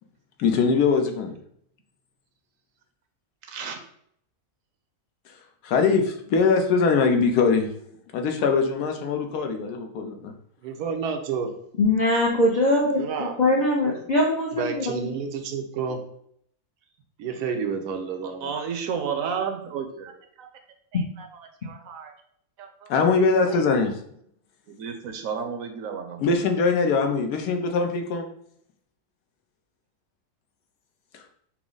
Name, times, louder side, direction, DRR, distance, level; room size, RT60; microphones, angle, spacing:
voice 1, 0.4-1.3 5.6-7.7 8.1-10.3 22.9-23.9 26.2-28.3, left 4 dB, 85° left, 4 dB, 1.2 m, -22 dB
voice 2, 3.5-3.8 12.9-13.3 18.4-20.1 20.4-20.5 20.9-22.1 22.6-22.9 23.4-23.6 24.7-26.3, right 6 dB, 70° right, 5 dB, 0.9 m, -32 dB
voice 3, 10.6-11.5 14.0-14.1 14.5-16.0 17.2-18.5, right 6 dB, 90° right, 5 dB, 1.2 m, -30 dB
voice 4, 11.8-15.0, left 1 dB, 55° left, -3 dB, 0.5 m, -22 dB
5.9 x 2.0 x 3.9 m, 0.68 s
omnidirectional pair, 1.6 m